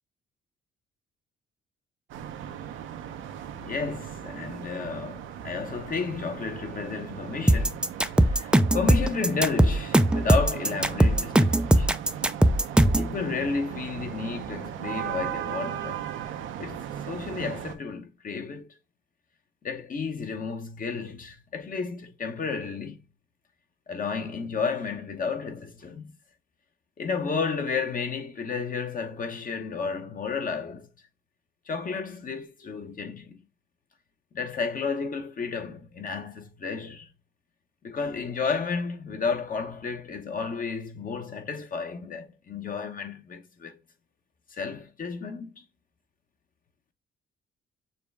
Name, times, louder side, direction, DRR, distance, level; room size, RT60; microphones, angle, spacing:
sound 1, 2.1-17.7, right 10 dB, 80° right, 0.8 m, -37 dB
voice 1, 3.6-7.9 8.2-11.9 13.0-16.1 16.6-18.7 19.6-23.0 23.9-26.1 27.0-30.9 31.7-33.4 34.3-37.1 37.8-43.8 44.5-45.6, left 5 dB, 45° left, 1.0 m, -32 dB
sound 2, 7.5-13.1, right 1 dB, 5° right, 0.4 m, -20 dB
6.8 x 2.3 x 3.3 m
cardioid pair, 90°, 20 cm